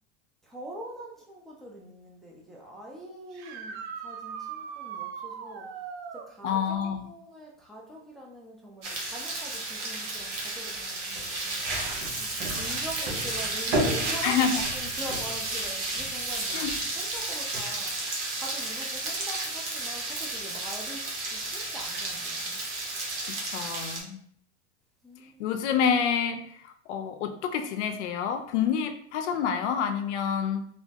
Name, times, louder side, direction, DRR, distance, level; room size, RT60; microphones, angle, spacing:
voice 1, 0.4-16.6 16.9-22.6 25.0-25.5, equal, ahead, -3 dB, 0.3 m, -44 dB
sound 1, 3.3-6.3 9.6-9.7 11.7-11.8 18.1-18.2, right 7 dB, 65° right, 0.5 m, -39 dB
voice 2, 6.4-7.1 14.2-14.6 16.5-16.7 23.2-24.2 25.4-30.7, left 7 dB, 75° left, 7 dB, 0.5 m, -28 dB
sound 2, 8.8-24.0, right 2 dB, 80° right, 1.0 m, -32 dB
3.1 x 2.1 x 2.7 m, 0.64 s
hypercardioid pair, 110°, 35 cm